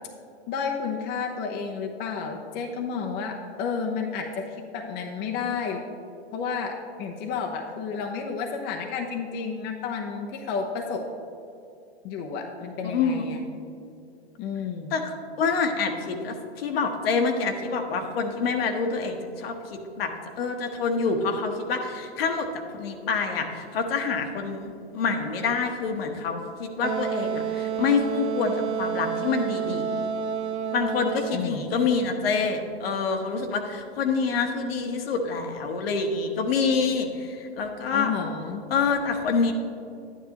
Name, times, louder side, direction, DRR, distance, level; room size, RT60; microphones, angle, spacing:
voice 1, 0.5-5.8 6.3-11.0 12.0-13.4 14.4-14.9 31.3-31.7 37.9-38.6, left 5 dB, 30° left, 2 dB, 0.8 m, -31 dB
voice 2, 12.8-13.3 14.9-20.1 20.4-22.5 22.7-30.1 30.7-38.1 38.7-39.5, left 5 dB, 60° left, 5 dB, 1.2 m, -27 dB
Wind instrument woodwind instrument, 26.8-31.5, right 7 dB, 85° right, 0.5 m, -29 dB
11.0 x 9.7 x 2.9 m, 2.6 s
hypercardioid pair, 115°, 33 cm